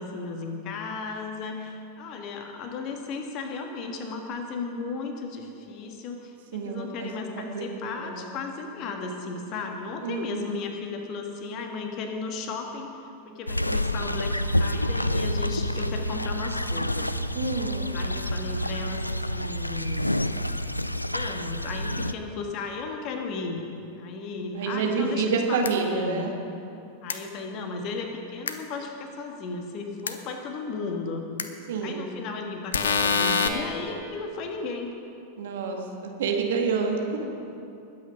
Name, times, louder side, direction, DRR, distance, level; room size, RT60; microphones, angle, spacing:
voice 1, 0.0-17.1 17.9-20.2 21.1-23.6 24.0-26.3 27.0-31.3 31.8-35.0, left 4 dB, 40° left, 4 dB, 1.6 m, -35 dB
voice 2, 6.5-8.3 10.0-10.6 17.3-17.9 24.5-26.3 31.7-32.1 35.4-37.3, right 5 dB, 60° right, 2 dB, 1.8 m, -28 dB
sound 1, 13.5-22.1, equal, 85° left, 0.4 m, -28 dB
sound 2, 25.6-25.7 27.1-27.2 28.5-28.6 30.1-30.2 31.4-31.5 32.7-33.5, left 6 dB, 70° left, 0.8 m, -24 dB
20.5 x 8.6 x 5.1 m, 2.7 s
figure-of-eight pair, 90°, 0 cm